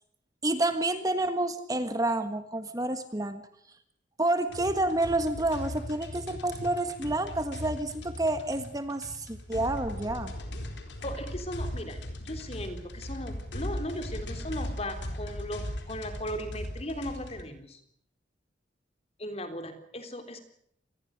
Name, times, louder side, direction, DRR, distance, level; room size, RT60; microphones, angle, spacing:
voice 1, 0.4-3.4 4.2-10.3, right 2 dB, 20° right, 10 dB, 1.5 m, -29 dB
sound 1, 4.5-17.4, left 1 dB, 70° left, 4.2 m, -38 dB
voice 2, 11.0-17.8 19.2-20.4, equal, 35° left, 8 dB, 3.5 m, -37 dB
26.5 x 20.5 x 6.5 m, 0.70 s
head